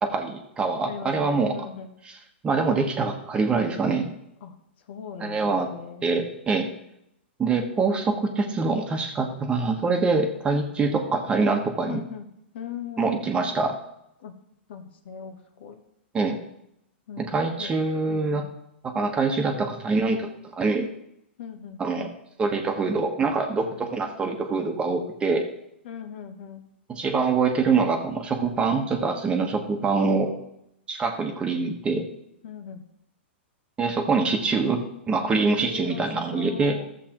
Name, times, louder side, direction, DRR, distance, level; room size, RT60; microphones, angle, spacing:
voice 1, 0.0-1.5 2.0-2.2 2.4-4.1 5.2-5.7 6.0-6.7 7.4-12.0 13.0-13.8 16.1-16.4 17.2-18.5 18.8-20.3 20.5-20.9 21.8-22.1 22.4-25.4 26.9-30.3 30.9-32.0 33.8-34.8 35.1-36.8, right 4 dB, 15° right, 4 dB, 1.1 m, -24 dB
voice 2, 0.8-1.9 4.4-4.6 4.9-6.1 11.9-12.3 12.5-13.3 14.2-14.4 14.7-15.8 17.1-17.7 18.1-18.5 21.4-21.8 25.8-26.7 32.4-32.9 35.5-36.9, left 7 dB, 65° left, 6 dB, 1.2 m, -39 dB
14.0 x 7.4 x 3.0 m, 0.81 s
hypercardioid pair, 135°, 6 cm